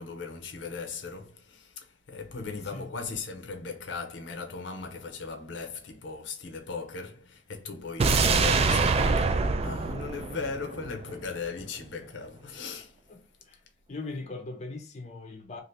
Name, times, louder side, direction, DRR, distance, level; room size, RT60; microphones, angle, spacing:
voice 1, 0.0-9.2 9.6-13.0, left 4 dB, 80° left, 0.6 m, -38 dB
voice 2, 2.4-2.9 8.3-9.3 13.1-13.6 13.9-15.6, left 3 dB, 40° left, 0.6 m, -41 dB
sound 1, 8.0-11.1 11.4-11.5, right 4 dB, 35° right, 0.3 m, -25 dB
2.7 x 2.5 x 3.2 m
head